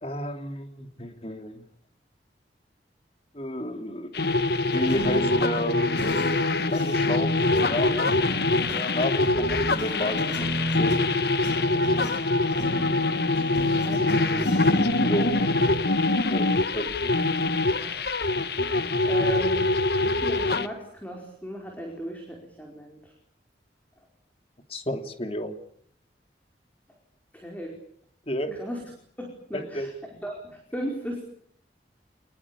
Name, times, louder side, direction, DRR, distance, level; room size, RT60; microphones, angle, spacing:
voice 1, 0.0-1.6 3.3-4.3 4.7-5.7 6.7-8.2 8.7-10.5 10.8-10.9 15.0-15.3 16.3-17.1 24.7-25.6 28.3-28.6 29.5-29.9, equal, 35° left, 6 dB, 3.1 m, -31 dB
sound 1, 4.1-20.7, left 2 dB, 60° left, 1.3 m, -24 dB
sound 2, 4.7-15.8, equal, 85° left, 7.9 m, -33 dB
voice 2, 13.5-14.6 17.8-18.1 18.5-19.7 20.0-23.1 27.3-27.7 28.5-28.8 29.2-29.9 30.2-31.2, equal, 10° left, 1 dB, 4.9 m, -37 dB
28.0 x 21.0 x 8.7 m, 0.64 s
head